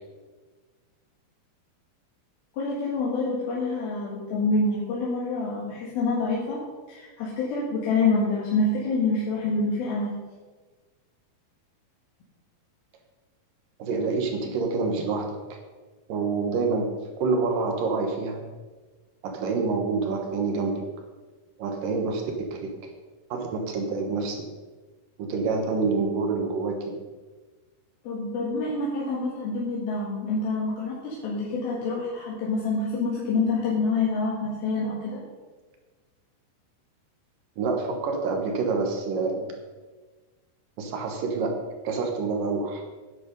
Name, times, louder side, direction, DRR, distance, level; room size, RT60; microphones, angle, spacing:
voice 1, 2.5-6.6 6.9-10.1 28.1-35.2, left 3 dB, 70° left, -5 dB, 3.6 m, -27 dB
voice 2, 13.8-15.6 16.1-18.4 19.2-20.8 21.6-22.7 23.3-24.4 25.2-27.0 37.6-39.5 40.8-41.5 41.8-42.8, right 4 dB, 65° right, 3 dB, 2.6 m, -27 dB
10.0 x 10.0 x 5.4 m, 1.3 s
omnidirectional pair, 4.5 m